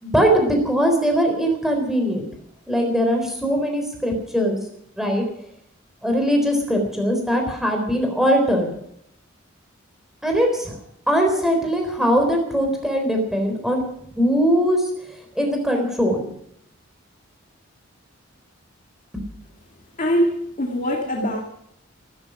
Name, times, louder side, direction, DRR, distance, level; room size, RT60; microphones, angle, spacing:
voice 1, 0.0-2.3 2.7-4.6 5.0-5.2 6.0-8.7 10.2-10.8 11.1-13.8 14.2-14.9 15.4-16.3 19.1-19.2, equal, ahead, 3 dB, 3.9 m, -21 dB
voice 2, 20.0-21.4, equal, 40° left, 0 dB, 2.1 m, -22 dB
16.0 x 13.0 x 6.1 m, 0.70 s
head